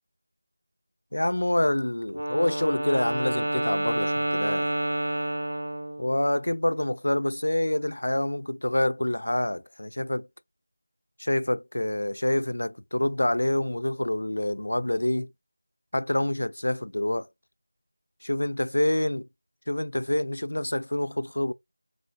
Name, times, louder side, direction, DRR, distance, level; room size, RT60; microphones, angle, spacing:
voice 1, 1.1-4.7 6.0-10.3 11.2-15.3 15.9-17.3 18.2-19.3 19.7-21.5, left 1 dB, 80° left, 0.5 m, -27 dB
Wind instrument woodwind instrument, 2.1-6.2, right 1 dB, 85° right, 2.2 m, -29 dB
5.0 x 4.2 x 2.2 m
figure-of-eight pair, 175°, 0 cm